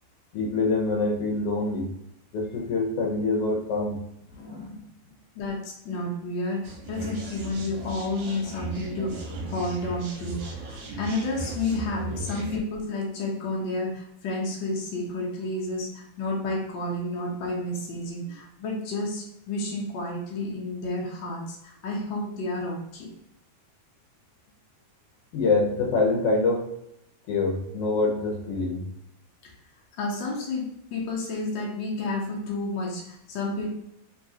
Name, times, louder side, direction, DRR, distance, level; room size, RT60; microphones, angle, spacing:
voice 1, 0.3-1.9 2.3-4.0 4.3-4.8 25.3-26.7 27.3-28.8, left 3 dB, 70° left, -1 dB, 1.5 m, -25 dB
voice 2, 5.3-23.1 29.4-29.5 29.9-33.7, left 2 dB, 90° left, -3 dB, 1.0 m, -31 dB
sound 1, 6.6-12.6, right 1 dB, 65° right, 1.5 m, -37 dB
4.0 x 3.6 x 2.7 m, 0.79 s
omnidirectional pair, 3.5 m